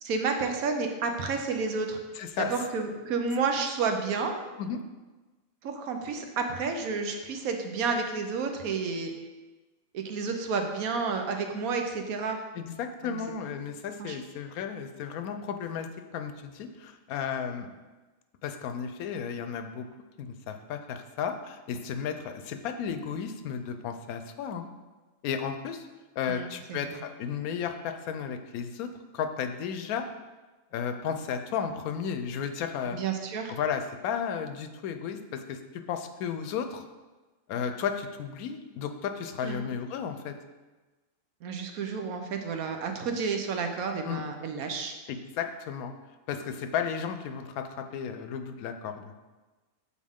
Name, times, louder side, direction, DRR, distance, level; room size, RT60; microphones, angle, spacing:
voice 1, 0.0-2.0 2.4-4.3 5.6-9.1 9.9-12.4 13.0-13.2 14.0-14.2 26.3-27.0 32.9-33.5 39.4-39.7 41.4-44.9, right 4 dB, 75° right, 5 dB, 1.2 m, -31 dB
voice 2, 2.1-2.5 4.6-4.8 12.5-17.7 18.4-19.8 20.2-24.7 25.2-25.9 26.2-28.9 29.1-30.1 30.7-33.0 33.5-35.6 35.9-36.8 37.5-40.3 44.1-44.2 45.1-45.9 46.3-49.1, left 7 dB, 80° left, 8 dB, 1.0 m, -33 dB
7.3 x 4.1 x 3.6 m, 1.2 s
omnidirectional pair, 1.5 m